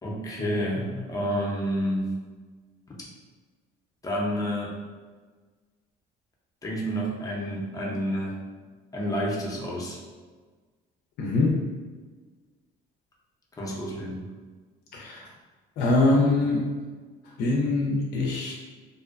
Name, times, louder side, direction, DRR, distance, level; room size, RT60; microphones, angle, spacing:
voice 1, 0.0-2.1 4.0-4.7 6.6-8.4 8.9-10.0 13.6-14.2, equal, 20° left, -3 dB, 0.6 m, -29 dB
voice 2, 11.2-11.6 14.9-15.3 15.8-16.7 17.4-18.5, left 2 dB, 70° left, -2 dB, 0.4 m, -23 dB
2.5 x 2.1 x 2.4 m, 1.4 s
cardioid pair, 110°, 17 cm